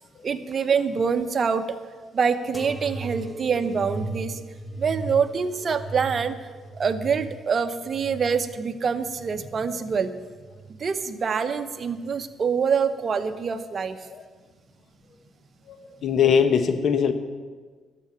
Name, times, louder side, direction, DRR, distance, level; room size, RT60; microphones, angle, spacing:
voice 1, 0.2-1.8 2.1-4.4 4.8-6.5 6.7-10.1 10.7-14.1, right 6 dB, 45° right, 8 dB, 0.9 m, -25 dB
sound 1, 2.5-9.7 10.3-11.0 11.8-12.3 13.3-13.4, right 2 dB, 15° left, 0.9 m, -38 dB
voice 2, 15.7-17.1, left 7 dB, 60° left, 9 dB, 1.2 m, -21 dB
12.0 x 7.6 x 9.7 m, 1.4 s
cardioid pair, 90°, 0 cm